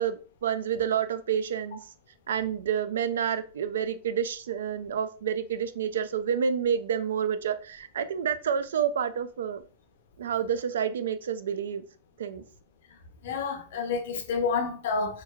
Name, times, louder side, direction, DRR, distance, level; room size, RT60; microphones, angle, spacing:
voice 1, 0.0-1.8 2.3-9.6 10.2-11.8 12.2-12.4, right 8 dB, 90° right, 0.3 m, -29 dB
voice 2, 13.2-15.2, left 5 dB, 70° left, 0.6 m, -29 dB
3.0 x 2.3 x 2.3 m
supercardioid pair, 140°, 0 cm